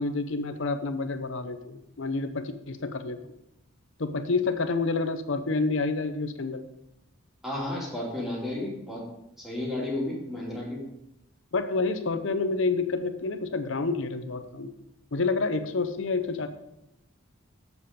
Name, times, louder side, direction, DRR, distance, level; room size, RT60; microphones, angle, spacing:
voice 1, 0.0-3.3 4.0-6.6 11.5-14.7 15.1-16.5, left 3 dB, 60° left, 8 dB, 0.7 m, -28 dB
voice 2, 7.4-9.0 9.4-10.9, left 1 dB, ahead, -5 dB, 2.7 m, -32 dB
8.1 x 7.0 x 5.2 m, 0.85 s
head